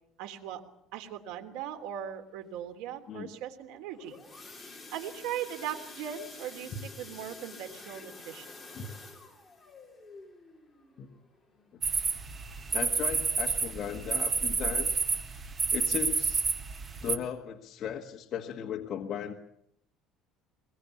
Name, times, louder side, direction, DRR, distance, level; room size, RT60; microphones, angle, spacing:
voice 1, 0.2-0.6 0.9-4.2 4.9-8.4, right 10 dB, 85° right, 7 dB, 3.3 m, -39 dB
sound 1, 3.7-12.4 12.8-13.1 13.4-13.5 13.9-14.0, left 3 dB, 5° left, 4.2 m, -49 dB
sound 2, 11.8-17.2, right 4 dB, 20° right, 1.4 m, -30 dB
voice 2, 12.7-15.0 15.7-16.5 17.0-19.3, left 8 dB, 40° left, 2 dB, 1.6 m, -36 dB
23.0 x 21.5 x 8.5 m, 0.73 s
cardioid pair, 165°, 0 cm